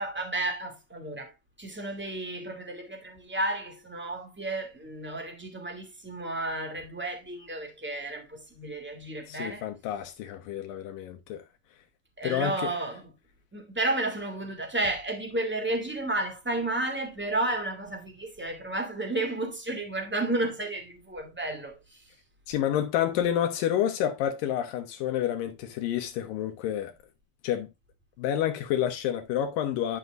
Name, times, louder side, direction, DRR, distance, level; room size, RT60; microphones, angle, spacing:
voice 1, 0.0-1.3 1.6-9.6 12.2-13.1 13.5-22.0, right 2 dB, 5° right, 1.4 m, -32 dB
voice 2, 9.3-11.4 12.2-12.8 22.5-26.9 27.4-27.7 28.2-30.0, left 10 dB, 80° left, 2.6 m, -29 dB
11.0 x 6.7 x 2.4 m
omnidirectional pair, 3.9 m